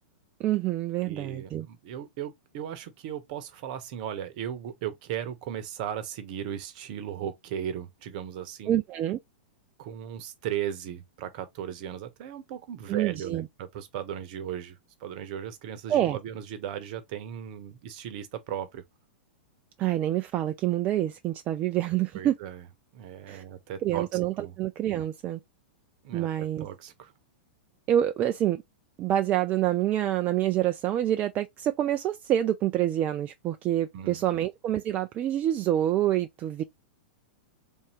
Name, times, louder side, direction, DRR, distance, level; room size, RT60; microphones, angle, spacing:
voice 1, 0.4-1.7 8.7-9.2 12.9-13.5 15.9-16.2 19.8-22.3 23.3-23.4 23.8-25.4 26.1-26.7 27.9-28.6 29.0-36.6, right 12 dB, 30° right, 0.3 m, -27 dB
voice 2, 1.0-8.8 9.8-18.8 22.1-22.6 22.9-24.1 24.4-24.6 26.0-27.1 33.9-34.4, right 10 dB, 50° right, 0.9 m, -37 dB
3.5 x 2.7 x 3.0 m
hypercardioid pair, 100°, 6 cm